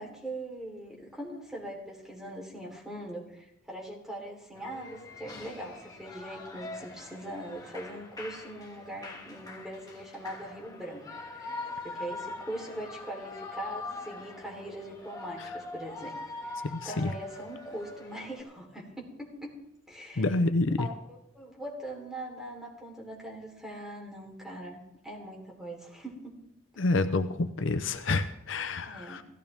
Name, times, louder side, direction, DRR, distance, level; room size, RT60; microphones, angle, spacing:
voice 1, 0.0-16.2 16.4-19.6 19.9-20.3 20.8-26.4 28.9-29.2, right 1 dB, 5° right, -2 dB, 3.7 m, -41 dB
Shout / Cheering, 4.5-18.4, left 3 dB, 20° left, 1.9 m, -43 dB
voice 2, 16.6-17.1 20.2-20.9 26.8-29.2, left 2 dB, 70° left, 10 dB, 0.7 m, -28 dB
17.0 x 15.0 x 3.6 m, 0.80 s
head